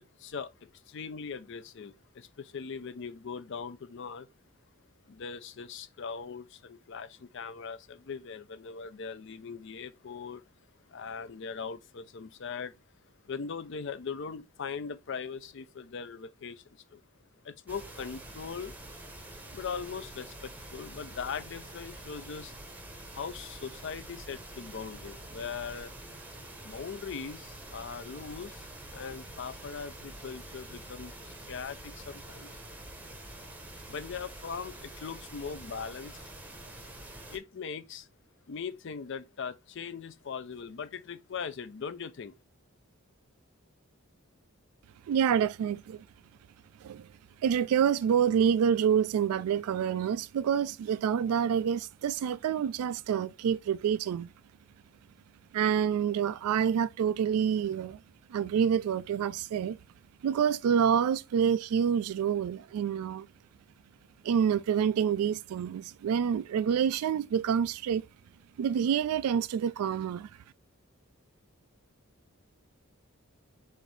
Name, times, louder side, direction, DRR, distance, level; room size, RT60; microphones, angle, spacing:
voice 1, 0.9-2.3 2.5-4.3 5.1-7.1 7.3-10.4 10.9-12.7 13.3-16.6 16.9-17.0 17.5-18.7 19.5-22.5 23.2-25.9 26.6-28.6 28.9-31.1 31.5-32.5 33.9-36.1 37.3-38.0 38.5-42.3, left 6 dB, 55° left, 0.4 m, -40 dB
sound 1, 17.7-37.4, right 1 dB, 10° right, 0.7 m, -46 dB
voice 2, 45.1-46.1 46.8-47.1 47.4-54.3 55.5-58.0 58.3-59.8 60.2-63.3 64.2-68.0 68.6-70.3, right 8 dB, 85° right, 0.3 m, -27 dB
6.4 x 2.6 x 3.2 m
head